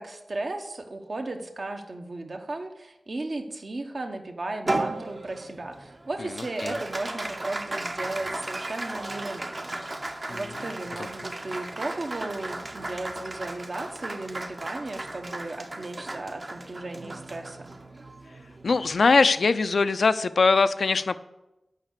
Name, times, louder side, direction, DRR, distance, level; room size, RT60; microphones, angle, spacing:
voice 1, 0.0-10.0 10.3-17.7, right 2 dB, 60° right, 4 dB, 1.2 m, -35 dB
Applause, 4.7-19.3, right 2 dB, 45° right, 0.9 m, -35 dB
voice 2, 6.2-6.8 10.3-10.7 11.0-11.1 18.6-21.2, left 4 dB, 80° left, 12 dB, 0.5 m, -22 dB
8.9 x 5.8 x 8.1 m, 0.96 s
wide cardioid pair, 60°, 0 cm